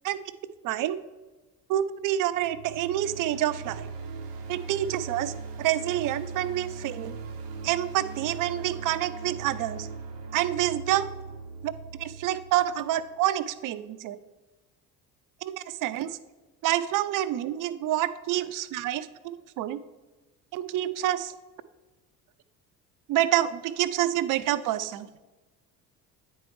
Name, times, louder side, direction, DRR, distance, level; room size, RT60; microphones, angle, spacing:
voice 1, 0.6-1.0 1.7-3.9 4.5-7.2 7.6-9.9 10.3-11.1 11.6-11.7 12.0-14.2 15.4-16.2 16.6-19.8 20.5-21.3 23.1-25.1, right 13 dB, 45° right, 14 dB, 0.5 m, -28 dB
sound 1, 2.2-13.3, right 4 dB, 90° right, 0.8 m, -39 dB
9.0 x 4.4 x 3.2 m, 1.2 s
hypercardioid pair, 60°, 47 cm